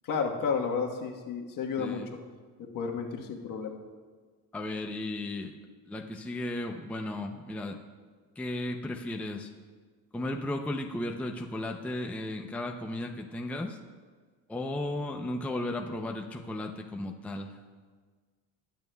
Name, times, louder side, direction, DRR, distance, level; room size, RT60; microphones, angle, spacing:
voice 1, 0.0-2.0 2.6-3.8, left 5 dB, 60° left, 1 dB, 1.3 m, -32 dB
voice 2, 1.8-2.2 4.5-5.5 5.9-7.8 8.4-9.5 10.1-13.8 14.5-17.6, left 1 dB, 5° left, 2 dB, 0.5 m, -35 dB
20.5 x 9.2 x 2.3 m, 1.5 s
cardioid pair, 130°, 37 cm